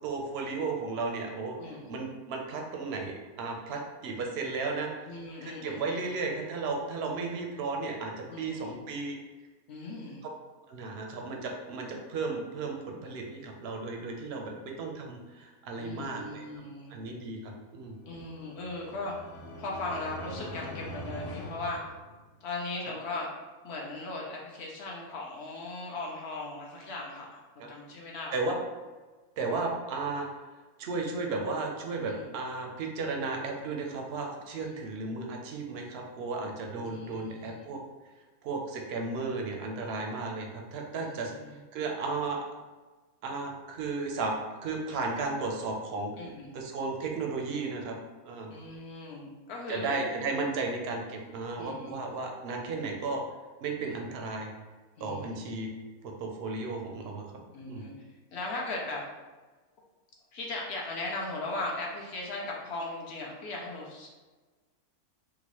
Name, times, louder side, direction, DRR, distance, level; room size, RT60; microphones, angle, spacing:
voice 1, 0.0-1.6 1.9-4.9 5.4-9.2 10.7-16.5 16.9-18.0 28.3-28.6 29.4-30.3 30.8-37.8 38.4-41.3 41.7-42.4 43.2-44.4 44.6-46.1 46.5-48.0 48.2-48.5 49.7-53.2 53.6-54.5 55.0-55.7 56.0-57.3 57.7-57.8, right 3 dB, 65° right, 1 dB, 0.6 m, -34 dB
voice 2, 1.6-1.9 5.1-6.0 8.3-8.8 9.7-10.2 15.8-16.9 18.1-19.1 19.6-21.8 22.4-23.3 23.6-28.3 32.1-32.3 34.5-34.9 36.8-37.7 41.2-41.6 46.2-46.5 48.5-49.9 51.6-52.0 53.8-54.1 55.0-55.4 57.5-59.0 60.3-64.1, left 2 dB, 60° left, -2 dB, 0.7 m, -38 dB
sound 1, 18.0-22.6, equal, 80° left, 1.1 m, -42 dB
3.9 x 2.4 x 2.9 m, 1.3 s
omnidirectional pair, 1.6 m